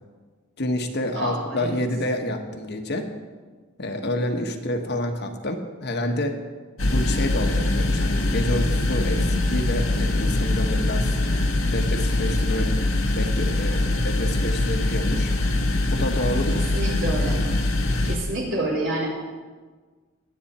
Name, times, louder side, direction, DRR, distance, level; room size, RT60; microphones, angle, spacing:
voice 1, 0.6-3.1 3.8-6.3 6.9-11.2 11.7-12.7 13.1-15.3 15.9-17.1, left 1 dB, 55° left, 4 dB, 1.3 m, -28 dB
voice 2, 1.2-1.7 16.5-17.4 18.0-19.1, right 2 dB, 60° right, -3 dB, 4.6 m, -28 dB
sound 1, 6.8-18.2, left 2 dB, 85° left, 1.5 m, -23 dB
21.5 x 8.8 x 4.3 m, 1.4 s
head